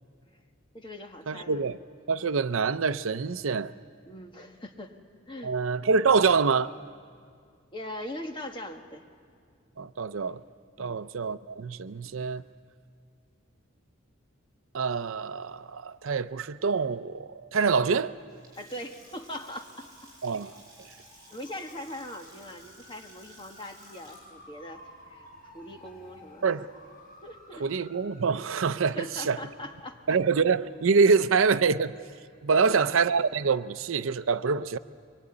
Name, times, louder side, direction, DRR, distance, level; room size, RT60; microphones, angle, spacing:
voice 1, 0.7-1.7 4.1-5.0 5.3-5.5 7.7-9.0 10.8-11.0 18.6-20.1 21.3-24.8 25.1-26.4 27.2-27.7 29.0-30.0 32.5-32.9, left 1 dB, 25° left, 1.6 m, -41 dB
voice 2, 1.3-1.8 2.1-3.7 5.4-6.7 9.8-10.4 10.8-12.4 14.7-18.1 20.2-20.5 26.4-26.7 27.6-29.4 30.1-31.9 32.4-34.8, right 5 dB, 75° right, 0.6 m, -25 dB
Water tap faucet / Sink (filling or washing) / Splash splatter, 18.3-26.3, right 1 dB, 15° right, 7.6 m, -55 dB
sound 1, 19.0-31.5, left 1 dB, 45° left, 5.9 m, -55 dB
24.0 x 23.0 x 9.8 m
head